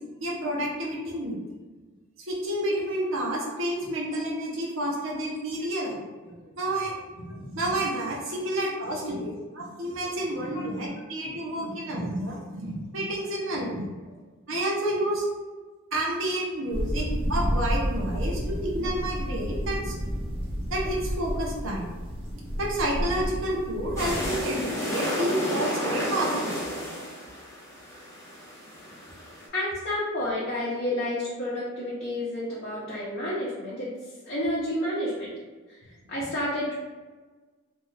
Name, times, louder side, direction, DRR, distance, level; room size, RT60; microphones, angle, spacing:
voice 1, 0.2-1.4 2.3-6.9 7.2-13.9 14.5-15.3 15.9-19.9 20.7-21.9 22.6-26.5, right 1 dB, 70° right, -3 dB, 0.8 m, -30 dB
sound 1, 16.7-24.4, equal, 25° right, 0.4 m, -30 dB
sound 2, 24.0-29.5, equal, 15° left, 0.8 m, -32 dB
voice 2, 29.5-35.3 35.7-36.7, left 1 dB, 50° left, -8 dB, 0.6 m, -30 dB
2.7 x 2.4 x 3.1 m, 1.3 s
head